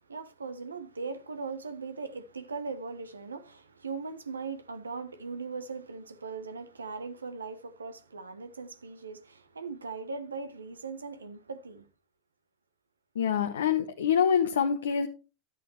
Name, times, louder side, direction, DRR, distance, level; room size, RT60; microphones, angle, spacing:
voice 1, 0.1-11.9, right 4 dB, 85° right, 1.0 m, -39 dB
voice 2, 13.1-15.1, left 7 dB, 75° left, 0.9 m, -25 dB
10.5 x 8.9 x 3.2 m
hypercardioid pair, 85°, 0 cm